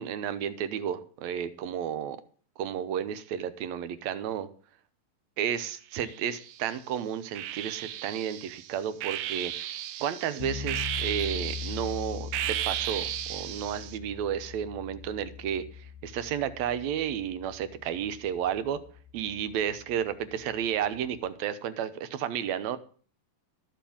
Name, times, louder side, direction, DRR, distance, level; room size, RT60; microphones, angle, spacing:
voice 1, 0.0-2.2 2.6-4.5 5.4-18.8 19.1-22.8, right 9 dB, 70° right, 12 dB, 2.0 m, -32 dB
sound 1, 6.0-6.7 7.4-14.0, right 12 dB, 90° right, 2.5 m, -35 dB
sound 2, 10.4-21.3, left 8 dB, 90° left, 1.4 m, -42 dB
13.5 x 6.0 x 8.7 m, 0.43 s
omnidirectional pair, 3.9 m